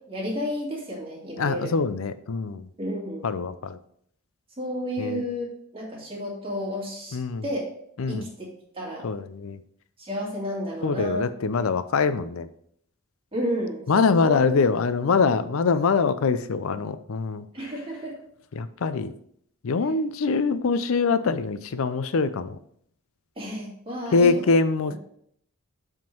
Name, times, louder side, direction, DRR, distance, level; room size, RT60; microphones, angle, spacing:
voice 1, 0.1-1.7 2.8-3.3 4.6-5.5 5.7-7.2 7.4-7.6 8.1-8.5 8.7-9.1 10.0-11.3 11.5-11.7 13.3-14.3 17.5-18.1 23.4-24.3, equal, 25° right, -3 dB, 2.1 m, -31 dB
voice 2, 1.4-2.7 3.2-3.8 5.0-5.2 7.1-7.4 8.0-8.3 9.0-9.6 10.8-12.5 13.9-17.5 18.5-19.1 19.6-22.6 24.1-25.0, left 4 dB, 65° left, 12 dB, 0.5 m, -24 dB
7.5 x 3.7 x 4.5 m, 0.68 s
head